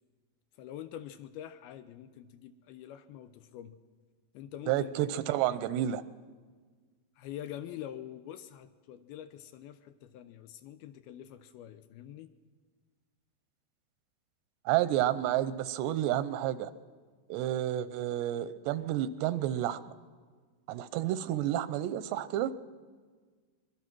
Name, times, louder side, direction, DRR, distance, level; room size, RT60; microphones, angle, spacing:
voice 1, 0.6-3.8 4.3-5.0 7.2-12.3, left 11 dB, 75° left, 11 dB, 2.5 m, -45 dB
voice 2, 4.7-6.0 14.7-16.7 17.3-19.8 20.7-22.5, right 12 dB, 85° right, 15 dB, 3.0 m, -30 dB
24.5 x 22.0 x 6.1 m, 1.5 s
omnidirectional pair, 4.8 m